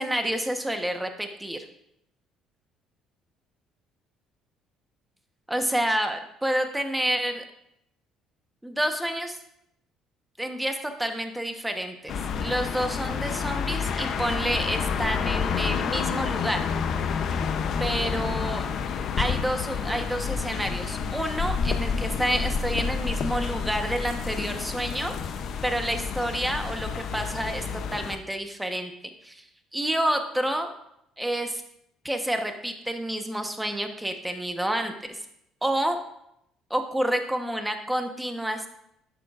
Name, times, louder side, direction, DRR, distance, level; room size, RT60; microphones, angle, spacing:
voice 1, 0.0-1.6 5.5-7.4 8.6-9.4 10.4-12.1 12.4-16.6 17.8-18.7 19.2-25.1 25.6-28.9 29.2-29.4 29.7-30.7 31.2-31.6 32.0-35.2 35.6-36.0 36.7-38.7, right 1 dB, 5° right, 5 dB, 1.1 m, -29 dB
sound 1, 12.1-28.2, left 6 dB, 60° left, 0.7 m, -29 dB
11.0 x 6.7 x 2.5 m, 0.78 s
supercardioid pair, 85°, 0 cm